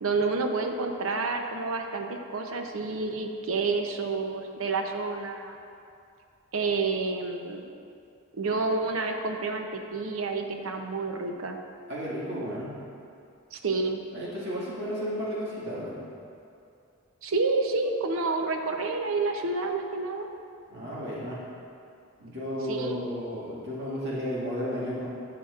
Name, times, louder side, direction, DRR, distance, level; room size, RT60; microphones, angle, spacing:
voice 1, 0.0-5.6 6.5-7.6 8.3-11.6 13.5-14.0 17.2-20.3 22.7-23.1, right 3 dB, 75° right, 4 dB, 0.7 m, -29 dB
voice 2, 11.9-12.8 14.1-16.0 20.7-21.4 22.2-25.1, equal, 55° right, -7 dB, 1.9 m, -33 dB
11.5 x 7.6 x 2.5 m, 2.5 s
head